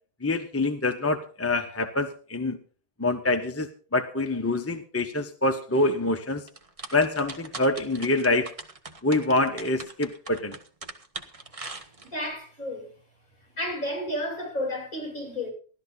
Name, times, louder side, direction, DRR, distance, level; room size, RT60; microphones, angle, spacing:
voice 1, 0.2-2.6 3.0-6.4 6.9-8.5 9.0-10.6, left 2 dB, 10° left, 0.7 m, -26 dB
sound 1, 6.5-12.3, right 3 dB, 25° right, 0.9 m, -40 dB
voice 2, 12.0-12.9 13.6-15.5, left 1 dB, 45° left, 8.3 m, -32 dB
16.5 x 12.5 x 4.1 m
omnidirectional pair, 1.9 m